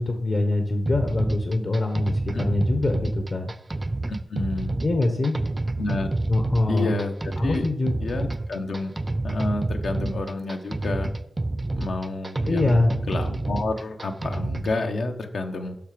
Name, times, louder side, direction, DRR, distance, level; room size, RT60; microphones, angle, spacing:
voice 1, 0.0-3.5 4.8-5.4 6.3-6.9 7.4-8.0 12.5-12.9, left 2 dB, 55° left, 5 dB, 1.0 m, -24 dB
sound 1, 0.9-14.8, right 2 dB, 30° right, 0.5 m, -29 dB
voice 2, 4.1-4.8 5.8-6.1 6.7-7.7 8.0-8.9 9.2-11.1 11.8-12.8 13.1-15.7, left 3 dB, 80° left, 5 dB, 0.9 m, -29 dB
7.1 x 5.8 x 5.0 m, 0.80 s
cardioid pair, 65°, 0 cm